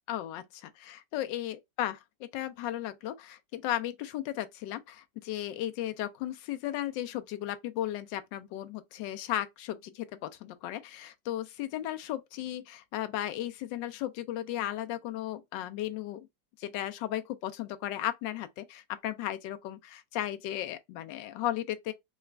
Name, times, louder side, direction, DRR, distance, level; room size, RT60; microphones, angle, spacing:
voice 1, 0.1-16.3 16.6-21.9, left 13 dB, 85° left, 1.3 m, -35 dB
4.1 x 2.3 x 3.2 m
omnidirectional pair, 1.9 m